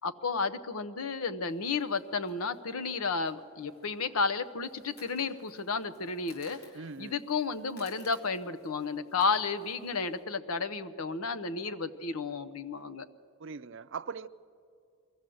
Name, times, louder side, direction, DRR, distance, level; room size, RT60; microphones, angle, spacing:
voice 1, 0.0-6.6 7.0-13.1, left 4 dB, 90° left, 11 dB, 0.9 m, -32 dB
sound 1, 1.4-10.2, left 1 dB, 50° left, 6.6 m, -60 dB
voice 2, 6.7-7.2 13.4-14.3, right 5 dB, 60° right, 13 dB, 0.5 m, -40 dB
22.5 x 15.0 x 7.8 m, 2.4 s
head